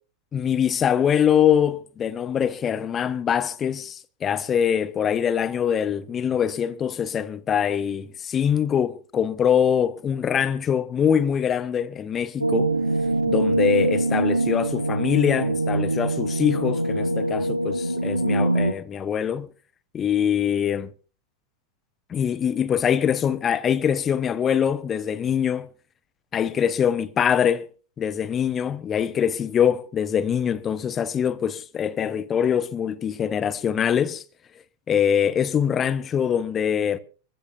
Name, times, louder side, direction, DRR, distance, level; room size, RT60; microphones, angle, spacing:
voice 1, 0.3-12.7 13.3-19.5 19.9-20.9 22.1-25.7 26.3-27.7 28.0-34.2 34.9-37.0, left 8 dB, 25° left, 1.0 m, -23 dB
sound 1, 12.4-18.7, right 1 dB, 85° right, 0.9 m, -23 dB
25.5 x 15.0 x 2.7 m
figure-of-eight pair, 90°, 0 cm